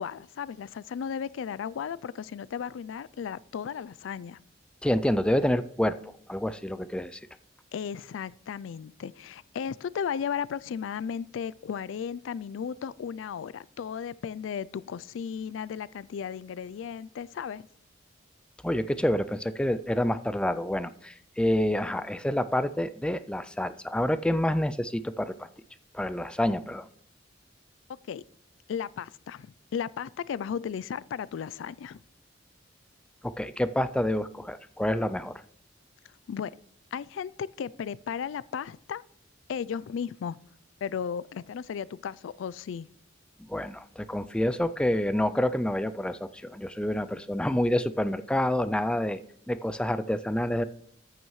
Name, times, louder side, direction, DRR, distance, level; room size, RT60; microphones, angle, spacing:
voice 1, 0.0-4.4 7.7-17.7 28.1-28.2 28.7-32.0 36.3-36.6 36.9-39.0 39.5-40.4 40.8-42.9, left 7 dB, 90° left, 0.3 m, -35 dB
voice 2, 4.8-6.0 6.3-7.2 18.6-25.5 25.9-26.9 33.2-35.4 43.5-49.2 49.5-50.6, left 1 dB, 5° left, 0.3 m, -28 dB
14.0 x 9.3 x 3.1 m
head